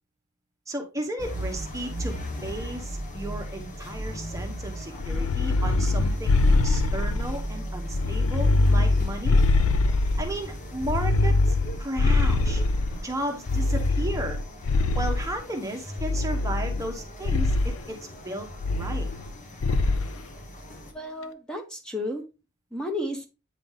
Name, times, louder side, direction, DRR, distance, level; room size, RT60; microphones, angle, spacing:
voice 1, 0.7-6.3 6.6-9.4 10.2-12.6 13.0-14.4 14.9-18.0 18.2-19.1, right 1 dB, 15° right, 3 dB, 1.0 m, -34 dB
sound 1, 1.2-20.9, equal, 40° left, 1.5 m, -37 dB
sound 2, 5.0-7.4 7.9-10.4 10.8-13.0 13.5-15.3 16.0-16.9 17.2-17.7 18.6-19.3 19.6-20.1, left 3 dB, 75° left, 0.5 m, -23 dB
voice 2, 20.8-22.2 22.7-23.3, left 1 dB, 5° left, 3 dB, 1.0 m, -32 dB
9.0 x 3.9 x 3.6 m, 0.29 s
head